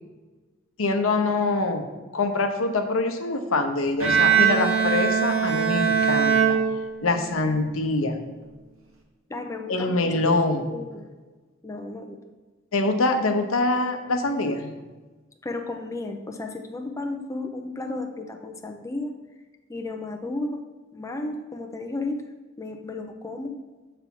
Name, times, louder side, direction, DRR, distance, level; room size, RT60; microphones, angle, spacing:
voice 1, 0.8-1.9 2.1-6.6 7.0-8.2 9.7-10.7 12.7-14.7, left 2 dB, 75° left, 6 dB, 0.8 m, -24 dB
Bowed string instrument, 4.0-7.3, right 7 dB, 80° right, 1.2 m, -21 dB
voice 2, 9.3-11.0 11.6-12.2 15.4-19.2 19.7-20.6 20.9-22.2 22.6-23.6, left 2 dB, 15° left, 3 dB, 0.5 m, -33 dB
6.9 x 3.4 x 5.9 m, 1.2 s
head